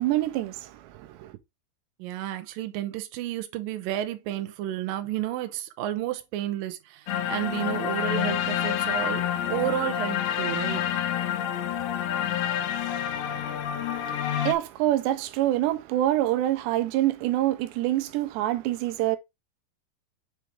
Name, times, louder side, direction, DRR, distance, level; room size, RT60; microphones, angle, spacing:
voice 1, 0.0-1.4 13.2-19.2, right 14 dB, 90° right, 2.9 m, -27 dB
voice 2, 2.0-10.9, right 13 dB, 75° right, 2.2 m, -31 dB
sound 1, 7.1-14.5, left 10 dB, 85° left, 3.2 m, -28 dB
7.5 x 4.3 x 3.4 m
omnidirectional pair, 4.9 m